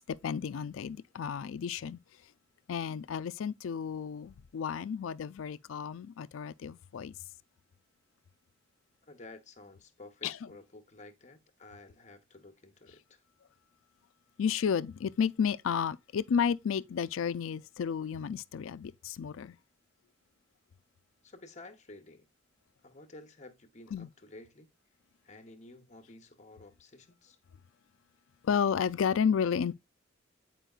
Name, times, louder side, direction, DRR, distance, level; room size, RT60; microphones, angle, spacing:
voice 1, 0.0-2.0 2.7-7.1 10.2-10.4 14.4-19.6 23.9-24.1 28.4-29.7, left 7 dB, 80° left, 0.4 m, -32 dB
voice 2, 9.0-13.2 21.2-22.3 22.8-24.7 25.2-27.4, left 2 dB, 35° left, 0.8 m, -52 dB
9.1 x 4.5 x 2.4 m
head